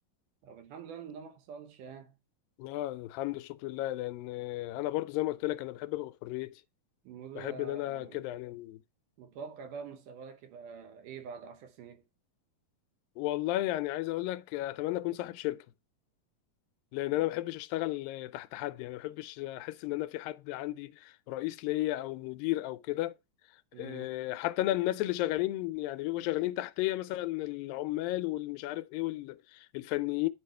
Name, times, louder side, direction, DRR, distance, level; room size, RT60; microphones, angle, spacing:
voice 1, 0.4-2.2 7.0-8.3 9.2-12.0 17.1-17.3 23.7-24.2, right 6 dB, 70° right, 2.4 m, -46 dB
voice 2, 2.6-6.6 7.4-8.8 13.2-15.7 16.9-23.1 23.8-30.3, left 16 dB, 85° left, 2.3 m, -33 dB
10.0 x 4.8 x 3.3 m
omnidirectional pair, 4.1 m